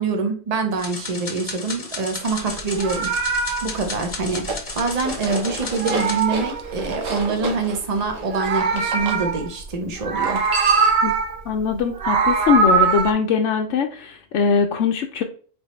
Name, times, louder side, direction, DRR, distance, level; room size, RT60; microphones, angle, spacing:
voice 1, 0.0-3.1 3.6-4.5 4.7-10.4, right 4 dB, 35° right, 5 dB, 0.8 m, -25 dB
sound 1, 0.8-6.3, left 3 dB, 35° left, 0.8 m, -34 dB
Meow, 2.6-5.3 5.5-7.2 8.1-9.7 10.0-11.4 11.8-13.1, right 5 dB, 60° right, 0.9 m, -22 dB
sound 2, 4.3-9.2 10.2-11.1, right 3 dB, 75° right, 1.4 m, -31 dB
voice 2, 11.5-15.2, left 6 dB, 70° left, 2 dB, 0.9 m, -21 dB
4.2 x 3.5 x 3.0 m, 0.42 s
omnidirectional pair, 1.4 m